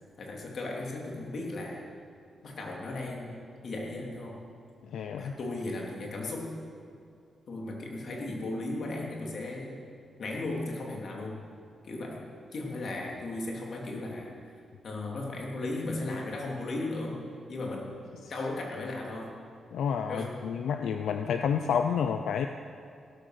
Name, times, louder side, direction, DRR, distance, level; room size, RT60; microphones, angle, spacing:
voice 1, 0.2-1.8 2.4-4.4 5.1-6.5 7.5-9.8 10.2-11.4 11.8-12.2 12.5-14.3 14.8-17.2 17.5-18.0 18.3-19.3 20.1-20.3, left 2 dB, 55° left, -1 dB, 3.3 m, -36 dB
voice 2, 4.8-5.3 19.7-22.5, left 7 dB, 90° left, 7 dB, 0.6 m, -29 dB
17.0 x 12.5 x 6.6 m, 2.4 s
cardioid pair, 120°, 0 cm